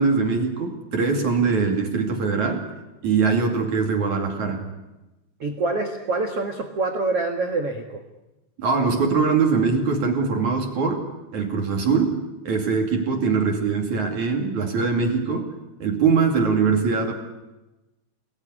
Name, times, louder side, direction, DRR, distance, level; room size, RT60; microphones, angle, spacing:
voice 1, 0.0-2.7 3.0-4.7 8.6-17.1, right 5 dB, 45° right, 3 dB, 3.3 m, -22 dB
voice 2, 5.4-8.0, right 3 dB, 65° right, 4 dB, 1.4 m, -26 dB
28.0 x 20.5 x 10.0 m, 1.0 s
omnidirectional pair, 5.5 m